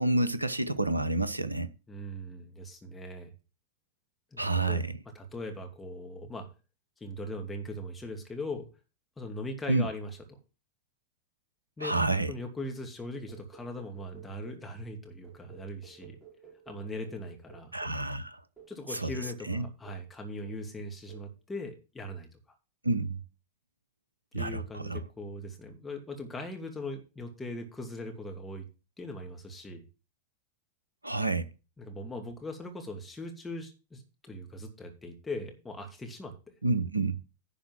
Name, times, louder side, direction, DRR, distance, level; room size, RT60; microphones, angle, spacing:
voice 1, 0.0-1.7 4.4-4.9 9.7-9.9 11.8-12.3 17.7-18.4 18.9-19.1 19.5-19.6 22.8-23.2 24.3-25.0 31.0-31.5 36.6-37.2, right 2 dB, 85° right, 0.8 m, -29 dB
voice 2, 1.9-3.3 4.3-4.8 5.1-6.5 7.0-8.7 9.2-10.4 11.8-12.0 12.3-16.2 16.7-17.7 18.7-22.3 24.3-28.6 29.0-29.8 31.8-36.5, left 1 dB, 10° left, 2.5 m, -40 dB
Envelope Attack Decay + Filtro Passa Banda - Pure Data, 13.3-14.7 15.2-18.1 18.6-18.8 19.2-19.5 19.8-20.1 20.4-20.7 21.1-21.3, right 8 dB, 10° right, 3.0 m, -54 dB
11.0 x 4.3 x 7.4 m
figure-of-eight pair, 90°, 0 cm